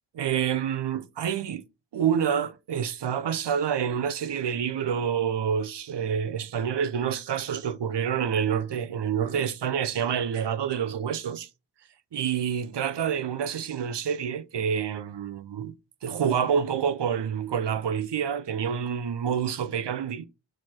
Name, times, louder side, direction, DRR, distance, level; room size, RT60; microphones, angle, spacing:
voice 1, 0.1-1.6 1.9-11.5 12.1-15.7 16.0-20.3, right 8 dB, 70° right, 0.7 m, -28 dB
4.7 x 4.5 x 5.8 m
wide cardioid pair, 90°, 43 cm